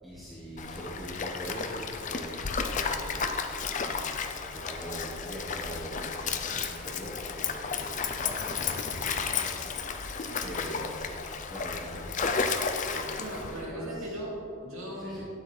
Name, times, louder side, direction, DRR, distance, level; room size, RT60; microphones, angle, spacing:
voice 1, 0.0-3.3 3.6-9.6 9.9-10.1 10.4-11.2 11.5-12.5 12.8-14.2 15.0-15.2, equal, ahead, -7 dB, 1.1 m, -42 dB
Stream, 0.6-13.6, left 5 dB, 35° left, 0.5 m, -33 dB
voice 2, 13.2-15.2, equal, 75° right, -3 dB, 2.6 m, -38 dB
12.5 x 9.6 x 3.3 m, 2.8 s
head